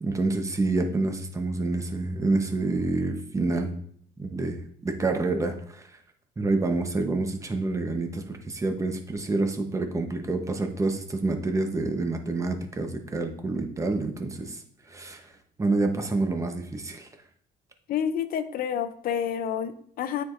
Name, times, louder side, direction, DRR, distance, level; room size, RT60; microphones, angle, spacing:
voice 1, 0.0-3.8 4.2-5.9 6.4-14.6 14.9-15.3 15.6-17.1, right 3 dB, 20° right, 5 dB, 0.9 m, -28 dB
voice 2, 17.9-20.2, left 8 dB, 60° left, 11 dB, 0.6 m, -29 dB
9.1 x 4.7 x 2.5 m, 0.63 s
cardioid pair, 110°, 17 cm